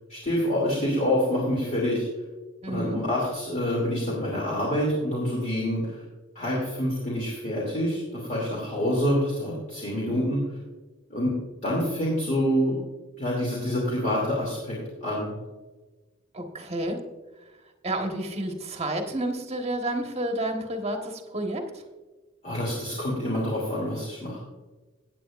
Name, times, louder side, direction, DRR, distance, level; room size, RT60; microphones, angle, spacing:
voice 1, 0.1-2.1 2.7-6.0 6.3-10.4 11.1-11.3 11.6-12.8 13.2-15.3 22.4-24.4, equal, 35° left, -5 dB, 2.7 m, -27 dB
voice 2, 2.6-3.0 16.3-17.0 17.8-21.8, right 1 dB, 30° right, 3 dB, 1.4 m, -30 dB
16.5 x 8.9 x 2.5 m, 1.2 s
head